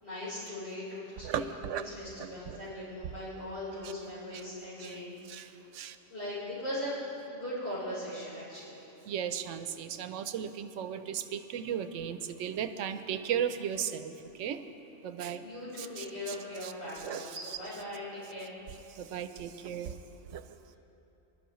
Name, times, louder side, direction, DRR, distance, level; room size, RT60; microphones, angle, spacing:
voice 1, 0.0-5.6 6.1-7.0 7.3-8.8 15.4-18.5, left 1 dB, 65° left, -15 dB, 3.9 m, -39 dB
voice 2, 1.2-1.8 2.2-2.6 3.8-3.9 4.3-4.4 4.8-5.0 5.3-6.0 9.1-14.6 15.0-15.4 15.8-16.4 16.6-17.3 18.9-20.0 20.3-20.4, right 8 dB, 90° right, 10 dB, 1.0 m, -36 dB
20.5 x 12.0 x 3.1 m, 2.9 s
omnidirectional pair, 1.2 m